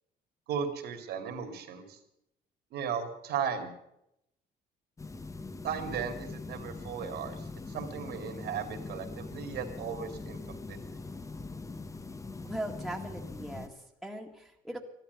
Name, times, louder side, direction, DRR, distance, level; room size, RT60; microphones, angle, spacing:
voice 1, 0.5-2.0 2.7-3.7 5.6-10.8, right 7 dB, 75° right, 6 dB, 2.7 m, -36 dB
sound 1, 5.0-13.7, left 3 dB, 20° left, 1.0 m, -42 dB
voice 2, 12.4-14.8, right 1 dB, ahead, 0 dB, 1.9 m, -39 dB
13.5 x 12.0 x 8.1 m, 0.81 s
cardioid pair, 110°, 17 cm